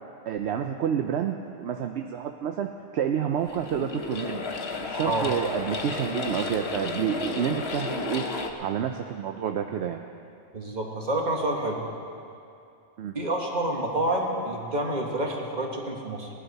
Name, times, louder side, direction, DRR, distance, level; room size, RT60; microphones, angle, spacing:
voice 1, 0.3-4.4 4.8-8.2 8.6-10.0 13.0-13.1, right 8 dB, 70° right, 5 dB, 0.8 m, -29 dB
sound 1, 3.4-8.5, left 3 dB, 65° left, 1.2 m, -33 dB
voice 2, 10.5-11.8 13.1-16.3, right 1 dB, 40° right, 0 dB, 1.6 m, -28 dB
18.5 x 11.0 x 4.1 m, 2.5 s
omnidirectional pair, 1.2 m